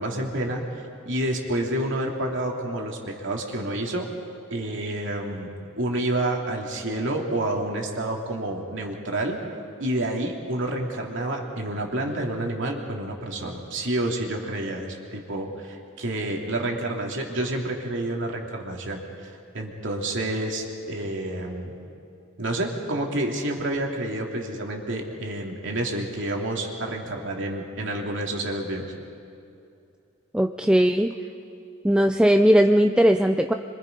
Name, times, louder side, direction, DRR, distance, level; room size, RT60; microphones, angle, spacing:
voice 1, 0.0-4.1 4.5-9.4 9.8-21.8 22.4-28.9, right 1 dB, 65° right, 0 dB, 2.9 m, -29 dB
voice 2, 30.3-31.1 31.8-33.5, equal, 5° right, 6 dB, 0.5 m, -18 dB
27.0 x 24.5 x 5.4 m, 2.7 s
head